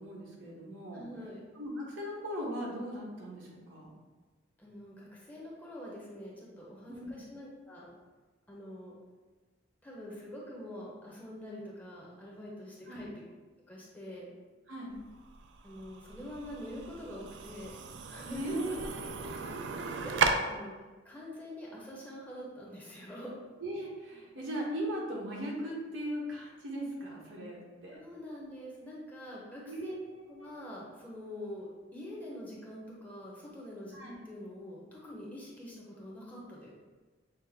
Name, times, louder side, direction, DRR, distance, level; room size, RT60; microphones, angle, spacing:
voice 1, 0.0-1.0 1.5-3.9 6.9-7.1 12.9-13.1 14.7-15.0 18.2-19.5 23.6-28.0 29.6-30.5 33.9-34.1, right 1 dB, 85° right, -3 dB, 1.2 m, -39 dB
voice 2, 0.9-1.4 4.6-7.9 8.5-8.9 9.8-13.1 13.7-14.3 15.6-17.8 18.0-18.8 20.0-20.7 21.0-23.3 27.9-29.9 30.3-34.0 34.2-36.7, left 1 dB, 10° left, -5 dB, 0.8 m, -45 dB
sound 1, 14.9-20.3, right 5 dB, 70° right, 0.4 m, -36 dB
6.2 x 2.1 x 3.5 m, 1.3 s
head